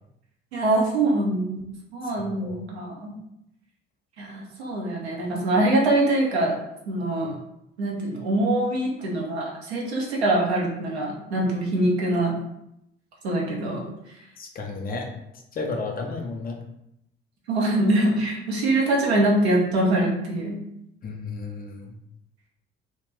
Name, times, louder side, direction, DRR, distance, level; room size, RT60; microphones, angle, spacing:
voice 1, 0.5-1.6 1.9-3.2 4.2-6.6 6.9-7.3 7.8-12.3 13.2-13.9 17.5-20.6, right 1 dB, 75° right, -2 dB, 0.7 m, -23 dB
voice 2, 2.0-2.6 14.4-15.1 15.5-16.6 21.0-21.9, left 3 dB, 30° left, 2 dB, 0.5 m, -33 dB
2.3 x 2.1 x 3.3 m, 0.81 s
figure-of-eight pair, 50°, 32 cm